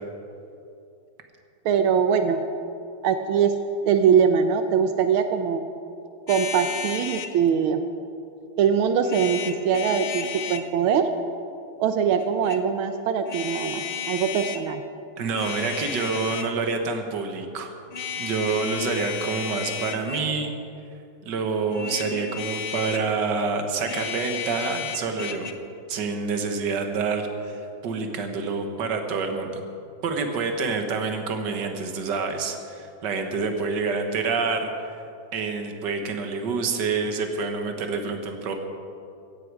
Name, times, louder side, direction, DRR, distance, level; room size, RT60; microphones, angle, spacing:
voice 1, 1.6-2.4 3.0-3.6 3.8-5.6 6.3-7.8 8.6-11.1 11.8-14.8, right 7 dB, 85° right, 8 dB, 1.6 m, -22 dB
sound 1, 6.3-7.3 9.0-10.7 12.2-12.6 13.3-14.6 15.2-16.6 17.9-20.4 21.7-23.1 23.8-25.5, left 7 dB, 70° left, 0.5 m, -33 dB
voice 2, 15.2-17.8 18.2-20.5 21.2-25.5 25.9-29.6 30.0-34.7 35.3-38.5, right 4 dB, 60° right, 5 dB, 1.9 m, -27 dB
16.5 x 15.5 x 4.8 m, 2.6 s
omnidirectional pair, 2.2 m